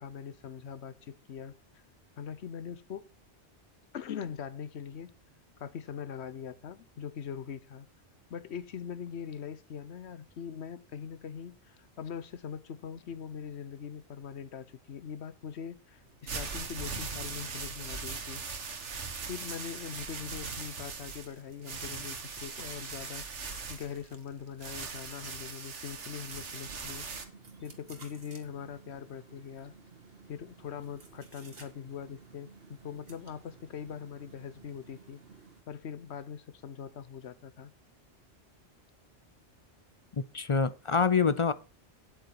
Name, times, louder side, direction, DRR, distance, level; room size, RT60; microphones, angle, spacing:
voice 1, 0.0-1.8 2.2-3.1 3.9-5.1 5.6-7.9 8.3-18.4 19.3-23.2 23.7-27.1 27.6-29.7 30.3-35.2 35.7-37.7, left 7 dB, 70° left, 1.0 m, -42 dB
sound 1, 16.0-27.3, right 5 dB, 85° right, 1.7 m, -40 dB
sound 2, 26.2-35.6, right 4 dB, 55° right, 1.8 m, -54 dB
voice 2, 40.3-41.5, left 5 dB, 45° left, 0.4 m, -25 dB
9.3 x 8.7 x 4.6 m
omnidirectional pair, 1.2 m